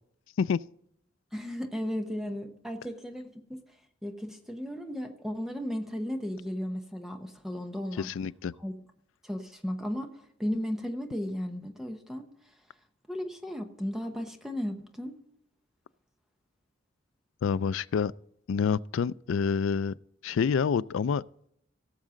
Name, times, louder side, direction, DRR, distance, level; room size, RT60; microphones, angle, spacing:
voice 1, 1.3-3.6 4.0-8.1 8.6-8.7 9.2-12.3 13.1-15.2, equal, ahead, 0.9 m, -35 dB
voice 2, 8.0-8.5 17.4-18.1 18.5-19.9 20.2-21.2, left 6 dB, 75° left, 0.3 m, -27 dB
17.5 x 7.3 x 3.8 m
head